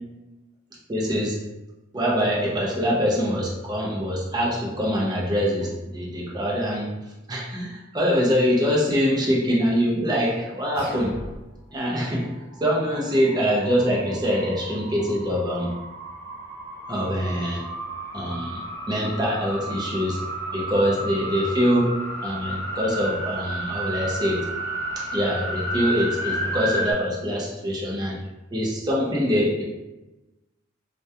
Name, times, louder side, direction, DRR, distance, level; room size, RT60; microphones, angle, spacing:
voice 1, 0.9-1.4 1.9-6.9 7.3-11.1 11.7-12.3 12.6-15.7 16.9-17.6 18.1-18.6 18.9-20.2 20.5-21.9 22.2-24.4 25.0-28.2 28.5-29.6, equal, 20° right, -3 dB, 0.4 m, -24 dB
sound 1, 10.8-11.8, equal, 45° left, 0.6 m, -39 dB
sound 2, 12.5-26.9, right 1 dB, 15° left, 0.8 m, -32 dB
2.3 x 2.1 x 2.7 m, 1.1 s
head